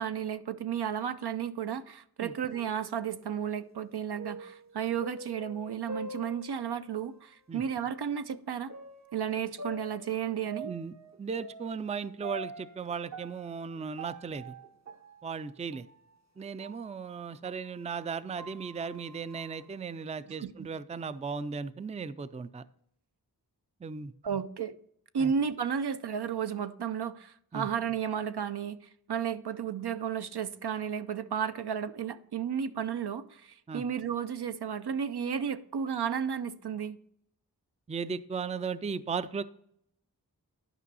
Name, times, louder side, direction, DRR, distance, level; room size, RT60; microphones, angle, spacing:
voice 1, 0.0-8.7 9.1-10.7 20.4-20.7 24.2-24.7 25.1-28.8 29.1-37.0, right 8 dB, 80° right, 0.6 m, -33 dB
sound 1, 2.5-7.1 7.6-7.7 8.7-17.7 18.1-20.0, right 2 dB, 45° right, 0.7 m, -46 dB
voice 2, 10.6-14.6 15.2-15.9 16.4-22.7 23.8-24.1 25.2-25.3 27.5-27.7 33.7-33.8 37.9-39.4, right 5 dB, 20° right, 0.3 m, -36 dB
11.0 x 5.3 x 4.1 m
wide cardioid pair, 55°, 39 cm